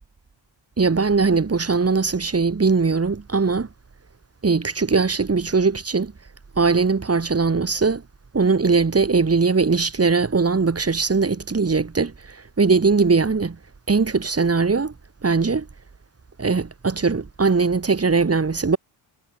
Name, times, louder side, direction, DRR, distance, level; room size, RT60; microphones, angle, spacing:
voice 1, 0.8-3.7 4.4-6.1 6.6-8.0 8.3-12.1 12.6-13.6 13.9-14.9 15.2-15.7 16.4-18.8, right 4 dB, 30° right, 7.5 m, -20 dB
cardioid pair, 80°, 49 cm